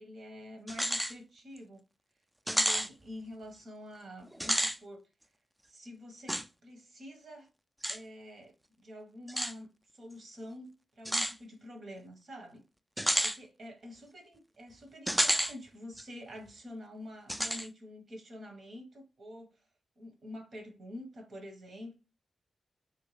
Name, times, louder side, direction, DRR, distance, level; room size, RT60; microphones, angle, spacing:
voice 1, 0.0-1.8 2.4-5.0 5.7-7.5 7.9-9.7 9.9-12.6 13.2-19.6 20.0-21.9, left 1 dB, 65° right, 1.1 m, -47 dB
sound 1, 0.7-1.1 1.6-1.7 2.5-2.9 4.3-4.8 6.3-6.4 7.8-8.0 9.3-9.5 11.1-11.3 13.0-13.4 15.1-15.5 16.0-16.1 17.3-17.7, equal, 10° right, 0.4 m, -30 dB
3.6 x 2.3 x 3.2 m
supercardioid pair, 45°, 0 cm